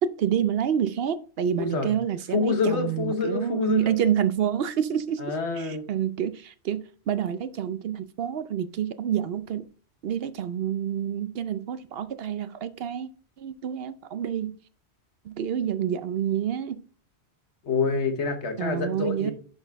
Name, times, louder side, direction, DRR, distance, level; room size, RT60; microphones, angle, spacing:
voice 1, 0.0-5.2 5.6-9.6 10.0-13.1 13.4-14.6 15.2-16.8 18.6-19.3, right 9 dB, 65° right, 0.8 m, -28 dB
voice 2, 1.6-1.9 2.3-4.0 5.2-5.9 17.6-19.3, left 4 dB, 85° left, 1.5 m, -27 dB
10.5 x 4.0 x 3.5 m
omnidirectional pair, 1.1 m